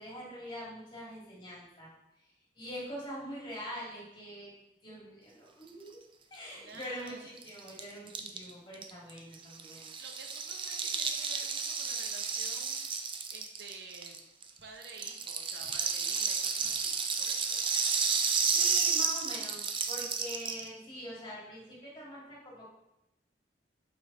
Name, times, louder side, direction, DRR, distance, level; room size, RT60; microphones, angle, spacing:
voice 1, 0.0-1.9 2.6-4.5 4.8-6.0 6.3-9.9 18.5-22.7, equal, 30° left, -5 dB, 1.9 m, -44 dB
voice 2, 6.5-7.3 10.0-12.8 13.3-14.2 14.6-17.6, right 4 dB, 65° right, 2 dB, 0.8 m, -50 dB
Rattle (instrument), 6.8-6.9 7.1-7.2 7.4-14.5 14.8-20.7, right 5 dB, 30° right, 0.4 m, -32 dB
5.1 x 4.7 x 4.0 m, 0.88 s
head